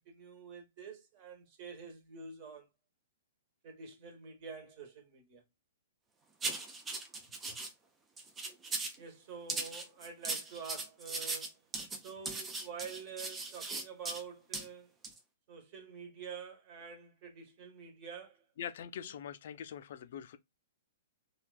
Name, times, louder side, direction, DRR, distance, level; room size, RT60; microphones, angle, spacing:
voice 1, 0.0-2.7 3.6-5.4 9.0-11.6 12.0-14.9 15.5-18.4 19.0-19.1, right 6 dB, 35° right, 1.2 m, -47 dB
sound 1, 6.4-7.7 8.2-9.0 9.5-14.2 14.5-14.7 15.0-15.2, right 3 dB, 15° right, 0.5 m, -38 dB
voice 2, 18.6-20.4, left 9 dB, 50° left, 0.4 m, -43 dB
3.2 x 2.4 x 2.3 m
figure-of-eight pair, 115°, 0 cm